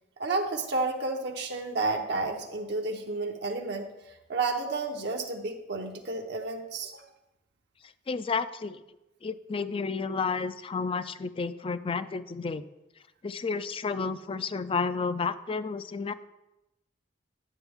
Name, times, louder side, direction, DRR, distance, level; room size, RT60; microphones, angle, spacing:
voice 1, 0.2-3.9 4.3-7.0, right 3 dB, 65° right, 2 dB, 0.8 m, -31 dB
voice 2, 8.1-8.8 9.2-12.6 13.2-16.1, left 4 dB, 30° left, 14 dB, 0.4 m, -31 dB
11.0 x 7.9 x 3.5 m, 0.95 s
head